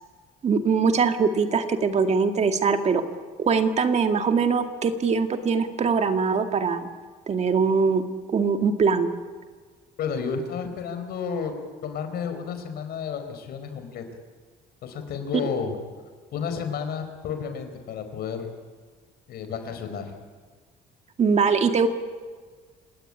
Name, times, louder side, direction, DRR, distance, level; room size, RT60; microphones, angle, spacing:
voice 1, 0.4-3.0 3.4-6.9 7.3-8.0 8.3-9.1 21.2-21.9, right 5 dB, 40° right, 6 dB, 2.2 m, -22 dB
voice 2, 10.0-11.5 11.8-14.0 14.8-15.7 16.3-18.5 19.3-20.1, left 6 dB, 70° left, 8 dB, 4.8 m, -31 dB
28.0 x 17.5 x 10.0 m, 1.5 s
cardioid pair, 110°, 17 cm